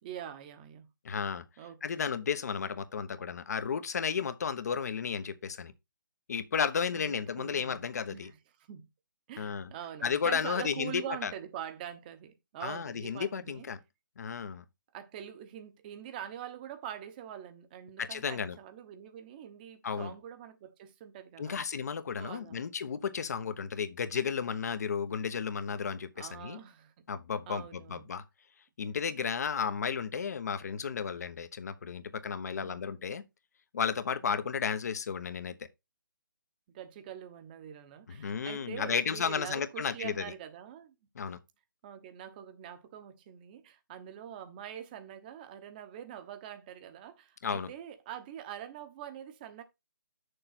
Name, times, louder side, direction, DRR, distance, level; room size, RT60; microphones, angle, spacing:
voice 1, 0.0-0.9 1.6-2.0 6.9-8.3 8.7-8.9 9.3-13.7 14.9-21.6 22.2-22.6 23.4-23.7 26.2-27.1 27.5-28.1 32.5-32.9 34.2-34.6 36.7-40.9 41.8-49.6, right 10 dB, 25° right, 1.1 m, -44 dB
voice 2, 1.0-1.4 1.8-5.7 6.3-8.3 9.4-9.7 10.0-11.3 12.6-13.8 14.2-14.6 18.0-18.6 19.8-20.1 21.4-26.6 27.1-28.2 28.8-33.2 33.7-35.6 38.1-40.2 41.1-41.4 47.4-47.7, left 6 dB, 50° left, 1.1 m, -33 dB
7.6 x 6.7 x 4.3 m
figure-of-eight pair, 145°, 11 cm